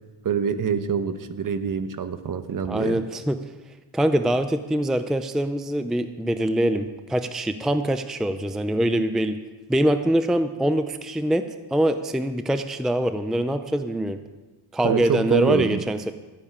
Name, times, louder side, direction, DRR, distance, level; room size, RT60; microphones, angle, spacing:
voice 1, 0.2-3.0 14.8-15.8, right 7 dB, 45° right, 10 dB, 1.0 m, -25 dB
voice 2, 2.7-3.4 3.9-9.4 9.7-14.2 14.7-16.1, right 1 dB, ahead, 9 dB, 0.5 m, -24 dB
13.5 x 7.1 x 9.5 m, 1.2 s
cardioid pair, 110°, 46 cm